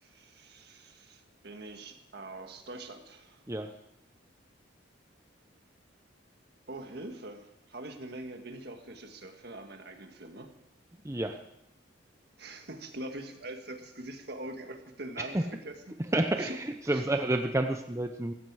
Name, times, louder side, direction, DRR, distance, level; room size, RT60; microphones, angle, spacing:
voice 1, 0.0-3.4 6.7-10.5 12.4-16.0 16.4-16.6 16.8-17.0, right 2 dB, 55° right, 5 dB, 1.7 m, -43 dB
voice 2, 11.0-11.4 15.2-15.4 16.1-18.3, right 1 dB, 15° right, 5 dB, 0.7 m, -29 dB
16.0 x 15.5 x 4.8 m, 0.82 s
head